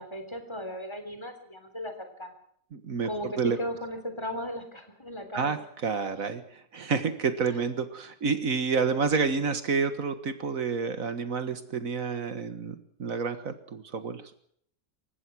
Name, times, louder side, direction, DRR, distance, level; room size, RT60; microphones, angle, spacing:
voice 1, 0.0-2.3 3.0-5.6 7.4-7.6, equal, 20° left, 6 dB, 3.5 m, -36 dB
voice 2, 2.7-3.1 3.4-3.6 5.3-5.6 5.8-6.4 6.7-14.2, right 5 dB, 70° right, 10 dB, 1.9 m, -29 dB
28.0 x 15.5 x 6.2 m, 0.67 s
omnidirectional pair, 1.5 m